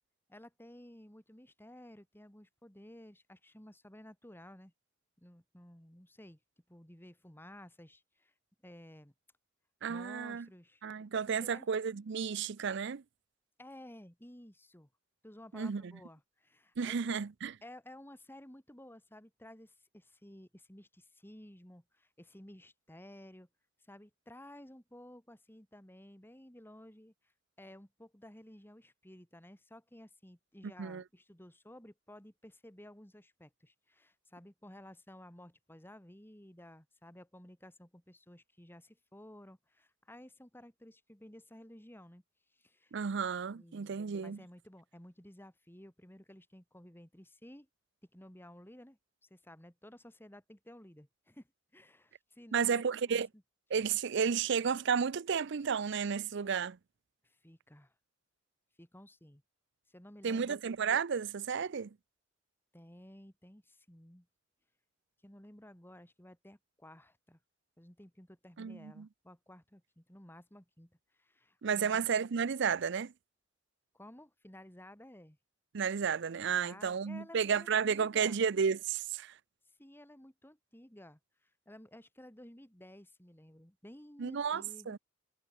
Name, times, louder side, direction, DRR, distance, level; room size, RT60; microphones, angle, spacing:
voice 1, 0.3-4.7 5.2-6.4 6.7-8.3 8.6-9.1 9.9-10.8 11.3-11.7 13.6-14.9 15.2-17.2 17.6-23.5 23.8-27.1 27.6-42.2 42.6-42.9 43.5-47.7 48.1-51.5 51.7-52.8 53.1-53.2 57.2-57.9 58.8-59.4 59.9-60.6 62.7-64.3 65.2-67.4 67.8-72.1 73.9-75.4 76.5-78.4 79.8-81.2 81.7-85.0, left 1 dB, 10° left, 3.1 m, -54 dB
voice 2, 9.8-10.5 10.8-13.0 15.5-15.9 16.8-17.5 30.8-31.0 42.9-44.4 52.5-53.3 53.7-56.8 60.2-61.9 68.6-69.1 71.6-73.1 75.7-79.3 84.2-85.0, right 6 dB, 65° right, 0.5 m, -32 dB
head